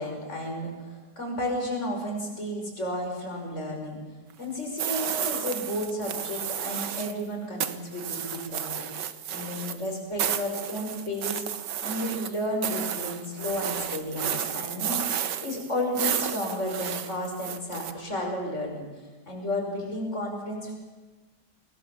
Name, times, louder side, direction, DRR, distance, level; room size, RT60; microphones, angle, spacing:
voice 1, 0.0-4.0 4.4-11.4 11.8-18.9 19.3-20.7, left 1 dB, 40° left, 0 dB, 6.1 m, -32 dB
sound 1, 4.8-7.2 7.6-17.9, right 9 dB, 85° right, 1.8 m, -32 dB
26.5 x 20.0 x 7.1 m, 1.2 s
omnidirectional pair, 1.8 m